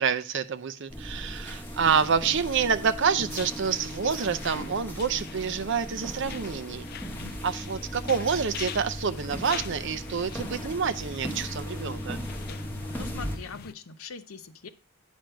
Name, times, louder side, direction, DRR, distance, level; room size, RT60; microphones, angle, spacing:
voice 1, 0.0-6.8 7.4-12.2, right 6 dB, 60° right, 10 dB, 0.6 m, -27 dB
sound 1, 0.9-13.4, equal, 10° left, 1.1 m, -37 dB
sound 2, 1.7-2.4 3.2-5.4 5.9-6.3 6.8-7.6, equal, 30° left, 2.1 m, -46 dB
sound 3, 3.3-13.7, left 8 dB, 45° left, 0.4 m, -44 dB
voice 2, 12.9-14.7, left 5 dB, 90° left, 8 dB, 0.6 m, -41 dB
9.0 x 5.2 x 4.5 m, 0.35 s
head